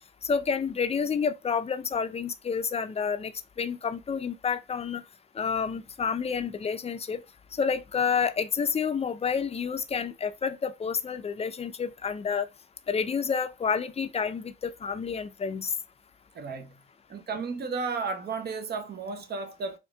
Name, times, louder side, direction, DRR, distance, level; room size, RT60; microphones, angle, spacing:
voice 1, 0.2-3.3 3.6-5.0 5.4-7.2 7.6-12.5 12.9-15.7, left 6 dB, 30° left, 0.5 m, -29 dB
voice 2, 16.3-16.8 17.1-19.8, right 4 dB, 55° right, 1.0 m, -33 dB
4.3 x 2.6 x 3.5 m
cardioid pair, 90°, 20 cm